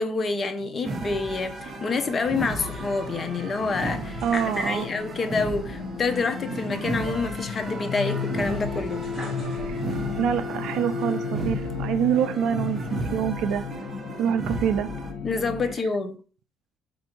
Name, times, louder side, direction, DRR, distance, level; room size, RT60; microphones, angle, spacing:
voice 1, 0.0-9.1 15.2-16.2, left 4 dB, 30° left, 0.6 m, -28 dB
sound 1, 0.6-15.8, left 6 dB, 75° left, 0.7 m, -35 dB
sound 2, 0.8-15.1, right 3 dB, 35° right, 0.7 m, -35 dB
sound 3, 2.2-5.3 5.6-5.7 7.5-10.2 10.8-11.6, equal, ahead, 2.0 m, -41 dB
voice 2, 4.2-4.9 9.7-9.8 10.2-13.6 14.2-14.9, right 9 dB, 70° right, 0.4 m, -26 dB
4.4 x 2.6 x 4.3 m
cardioid pair, 125°, 0 cm